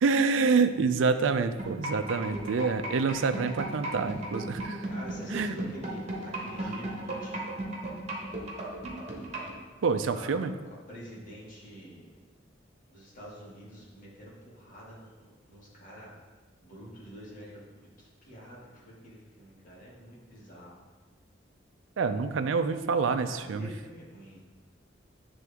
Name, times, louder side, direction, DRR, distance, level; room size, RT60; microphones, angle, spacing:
voice 1, 0.0-4.9 5.3-5.5 9.8-10.5 22.0-23.7, right 4 dB, 85° right, 10 dB, 0.4 m, -27 dB
sound 1, 1.6-9.5, right 2 dB, 35° right, 1.2 m, -35 dB
voice 2, 4.8-7.5 10.0-12.2 12.9-16.1 16.6-17.6 18.0-20.7 23.3-24.4, equal, 45° left, -6 dB, 1.9 m, -47 dB
9.2 x 3.4 x 3.5 m, 1.3 s
head